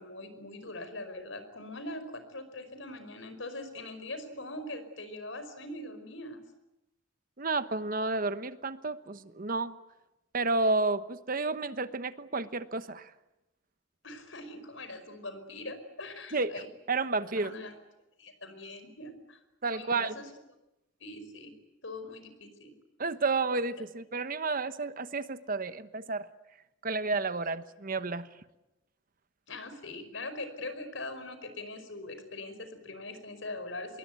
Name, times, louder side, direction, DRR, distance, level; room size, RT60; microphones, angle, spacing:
voice 1, 0.0-6.4 14.0-16.7 17.3-17.7 18.2-20.3 21.0-21.5 21.8-22.8 29.5-34.0, left 2 dB, 75° left, 10 dB, 5.2 m, -42 dB
voice 2, 7.4-9.8 10.3-13.1 16.3-16.6 16.9-17.5 19.6-20.1 23.0-26.3 26.8-28.3, right 3 dB, 45° right, 12 dB, 1.1 m, -31 dB
26.0 x 22.0 x 9.4 m, 0.93 s
head